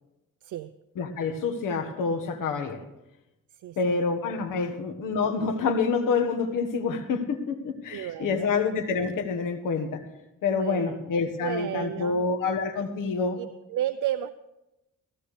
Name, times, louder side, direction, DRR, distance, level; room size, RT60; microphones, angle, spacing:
voice 1, 1.0-2.8 3.8-10.0 10.4-13.4, left 4 dB, 85° left, 7 dB, 1.4 m, -27 dB
voice 2, 7.9-8.5 10.5-10.9 11.4-12.3 13.4-14.3, right 12 dB, 75° right, 12 dB, 0.5 m, -32 dB
16.5 x 15.0 x 3.3 m, 0.95 s
cardioid pair, 105°, 32 cm